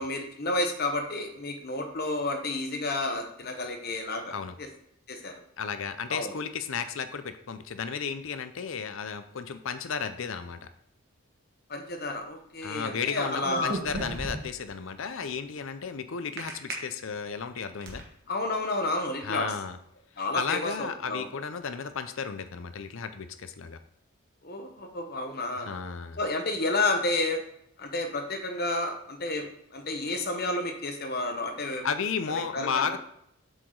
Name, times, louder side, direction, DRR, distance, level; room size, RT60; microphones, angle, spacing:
voice 1, 0.0-4.3 5.1-5.3 6.1-6.3 11.7-13.7 18.3-19.5 20.2-21.2 24.4-25.7 26.2-27.4 27.8-29.5 29.7-31.8 32.3-32.9, left 2 dB, 45° left, 4 dB, 1.0 m, -30 dB
voice 2, 5.6-10.7 12.6-18.0 19.2-19.8 20.3-23.8 25.6-26.2 31.8-33.0, left 6 dB, 60° left, 10 dB, 0.5 m, -33 dB
sound 1, 13.4-14.7 16.4-16.7 17.3-18.0, right 2 dB, 45° right, 1.4 m, -34 dB
7.6 x 4.8 x 3.8 m, 0.73 s
head